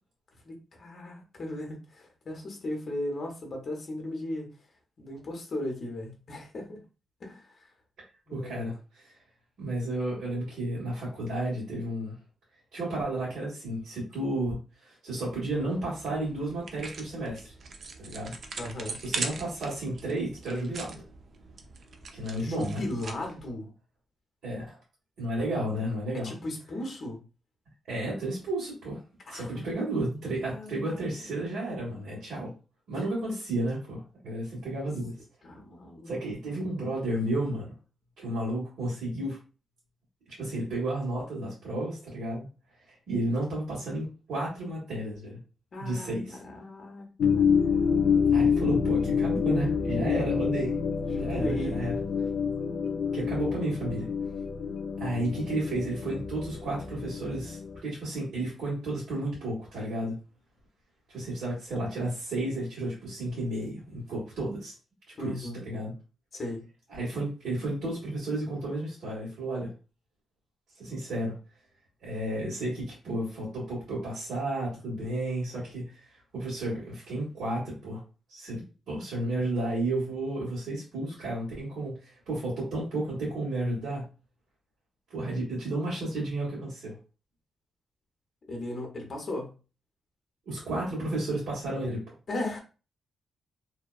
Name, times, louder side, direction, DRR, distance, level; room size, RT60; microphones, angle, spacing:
voice 1, 0.4-4.5 5.0-6.8 7.2-7.7 8.3-8.7 18.6-19.0 22.4-23.7 26.1-27.2 29.3-29.7 30.5-31.8 35.4-36.6 45.7-47.0 47.3-48.0 51.0-51.9 65.2-65.6 66.3-66.6 88.5-89.5 92.3-92.6, left 1 dB, 40° left, 2 dB, 0.8 m, -37 dB
voice 2, 8.3-9.1 9.6-12.1 12.7-17.5 18.0-18.3 19.0-21.0 22.1-22.8 24.4-24.8 25.2-26.3 27.9-29.0 29.3-32.5 32.9-35.1 36.1-37.7 38.2-39.4 40.4-42.5 43.1-45.4 45.8-46.4 48.3-50.7 51.2-51.9 53.1-54.1 55.0-60.2 61.1-64.7 65.2-65.9 66.9-69.7 70.8-71.3 72.0-75.8 76.3-78.0 78.3-84.0 85.1-87.0 90.5-92.1, right 1 dB, 75° right, -8 dB, 1.3 m, -32 dB
sound 1, 15.3-23.5, right 4 dB, 50° right, 0.3 m, -41 dB
sound 2, 47.2-57.8, left 6 dB, 60° left, 0.3 m, -27 dB
2.7 x 2.2 x 2.3 m, 0.33 s
wide cardioid pair, 155°, 0 cm